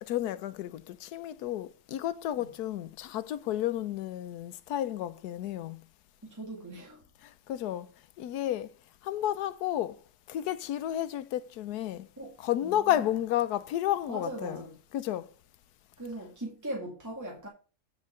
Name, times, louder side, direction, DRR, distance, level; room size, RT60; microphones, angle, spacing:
voice 1, 0.0-5.8 7.2-7.9 8.2-8.7 9.0-10.0 10.3-12.1 12.4-14.7 14.9-15.3, left 12 dB, 90° left, 1.2 m, -32 dB
voice 2, 6.2-7.0 12.2-12.3 12.6-12.9 14.1-14.7 16.0-17.5, right 1 dB, 10° right, 1.9 m, -39 dB
9.5 x 4.7 x 6.4 m
omnidirectional pair, 1.6 m